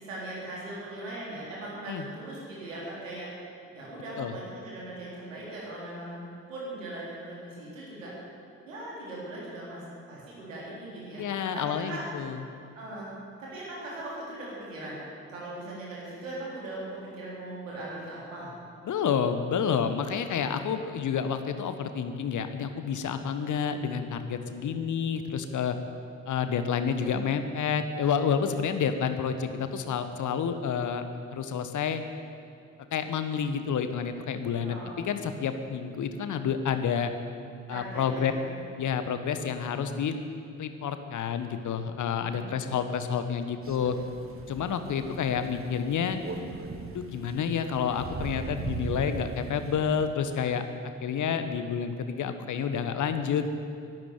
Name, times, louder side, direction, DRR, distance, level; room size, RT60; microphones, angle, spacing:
voice 1, 0.0-3.3 3.7-8.1 8.7-11.2 11.5-12.0 12.7-13.1 13.4-15.0 15.3-18.5 34.6-34.9 37.7-38.5 42.3-42.7, right 1 dB, 85° right, -6 dB, 3.7 m, -39 dB
voice 2, 11.2-12.4 18.8-25.8 26.3-31.1 31.3-32.0 32.9-34.8 35.0-37.1 37.7-38.3 38.8-40.1 40.6-44.0 44.5-46.2 46.9-50.6 51.0-53.5, left 7 dB, 50° left, 9 dB, 1.3 m, -29 dB
Crow, 43.6-50.0, right 3 dB, 35° right, 1.6 m, -39 dB
12.5 x 12.0 x 9.3 m, 2.6 s
figure-of-eight pair, 40°, 38 cm